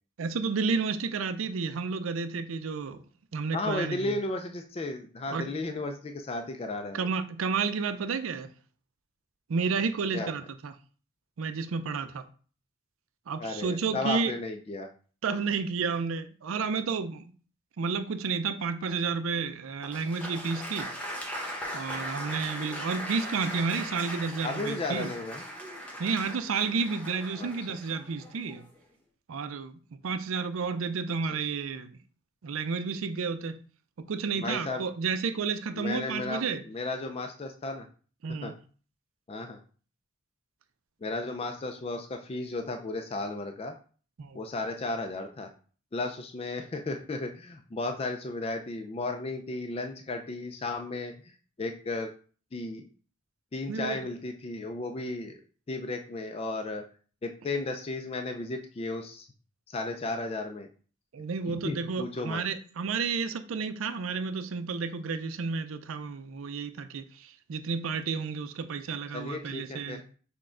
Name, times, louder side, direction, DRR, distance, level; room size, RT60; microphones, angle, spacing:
voice 1, 0.2-3.0 3.3-4.1 5.3-5.5 6.9-8.5 9.5-10.7 11.4-12.2 13.3-14.3 15.2-17.3 17.8-20.9 21.7-25.1 26.0-28.7 29.3-29.8 30.0-32.0 32.4-33.6 34.0-36.6 38.2-38.5 44.2-44.4 53.7-54.0 61.1-70.0, right 5 dB, 85° right, 0.5 m, -31 dB
voice 2, 3.5-7.1 10.1-10.3 13.4-14.9 24.4-25.4 27.4-27.5 34.3-34.8 35.7-37.9 38.4-38.5 39.3-39.6 41.0-43.7 44.3-45.5 45.9-51.3 51.6-52.1 52.5-52.8 53.5-55.4 55.7-56.8 57.2-59.3 59.7-60.7 61.5-62.4 69.1-70.0, left 2 dB, 30° left, 0.4 m, -34 dB
Applause, 19.8-28.8, equal, 5° left, 0.8 m, -39 dB
6.1 x 2.2 x 3.7 m
head